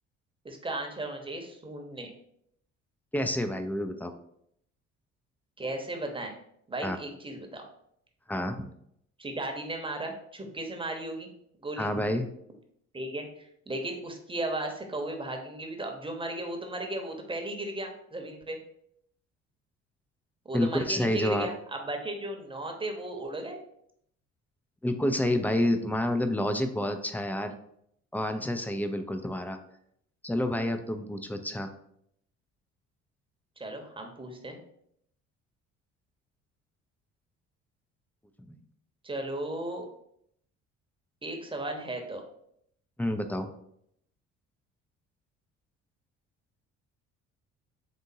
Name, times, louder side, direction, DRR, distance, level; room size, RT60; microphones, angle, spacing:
voice 1, 0.4-2.1 5.6-6.3 6.7-7.6 9.2-11.3 11.6-11.9 12.9-18.6 20.4-23.6 33.6-34.6 39.0-39.9 41.2-42.2, right 1 dB, 15° right, 3 dB, 0.9 m, -35 dB
voice 2, 3.1-4.1 6.8-7.0 8.3-8.7 11.8-12.3 20.5-21.5 24.8-27.6 28.1-29.6 30.2-31.7 38.4-38.6 43.0-43.5, left 1 dB, 5° left, 7 dB, 0.5 m, -29 dB
4.1 x 3.5 x 2.7 m, 0.71 s
hypercardioid pair, 55°, 37 cm